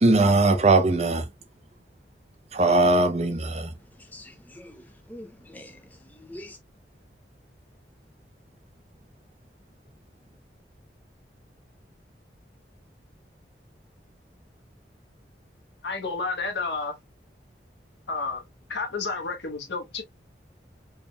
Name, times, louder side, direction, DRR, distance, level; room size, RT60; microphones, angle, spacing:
voice 1, 0.0-1.2 2.5-3.7, right 2 dB, 35° right, 0.6 m, -20 dB
voice 2, 4.0-6.6, left 1 dB, 10° left, 0.6 m, -45 dB
voice 3, 15.8-17.0 18.1-18.4 18.7-20.0, left 4 dB, 80° left, 1.1 m, -30 dB
4.7 x 3.3 x 2.2 m
head